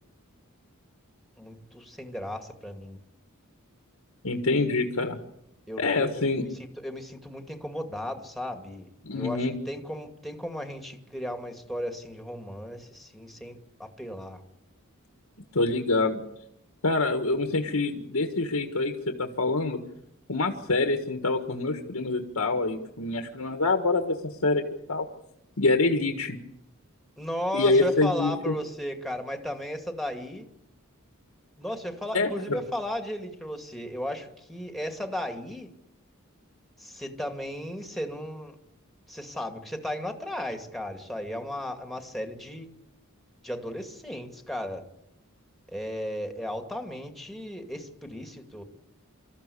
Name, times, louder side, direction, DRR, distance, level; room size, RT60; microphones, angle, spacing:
voice 1, 1.4-3.0 5.7-14.4 27.2-30.5 31.6-35.7 36.8-38.6 39.1-42.7 43.4-44.9 45.7-48.6, left 1 dB, ahead, 5 dB, 2.3 m, -35 dB
voice 2, 4.2-5.2 5.8-6.4 9.0-9.5 15.5-16.2 16.8-19.8 20.3-24.6 24.9-25.0 25.6-26.4 27.5-28.5 32.1-32.6, left 3 dB, 85° left, 4 dB, 1.7 m, -26 dB
25.5 x 14.5 x 8.5 m, 0.83 s
head